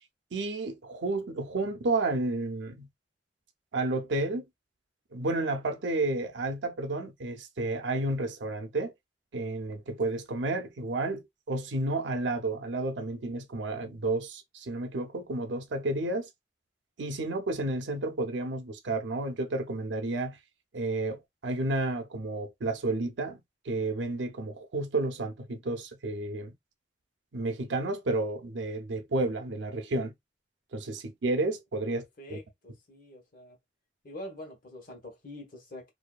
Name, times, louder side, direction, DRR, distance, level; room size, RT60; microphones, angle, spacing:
voice 1, 0.3-2.9 3.7-4.4 5.1-8.9 9.3-16.3 17.0-20.4 20.7-26.5 27.3-30.1 30.7-32.0 32.3-32.4, right 2 dB, 75° right, 0.6 m, -31 dB
voice 2, 31.8-33.6 34.0-35.9, left 1 dB, 50° left, 1.0 m, -45 dB
2.6 x 2.3 x 2.2 m
head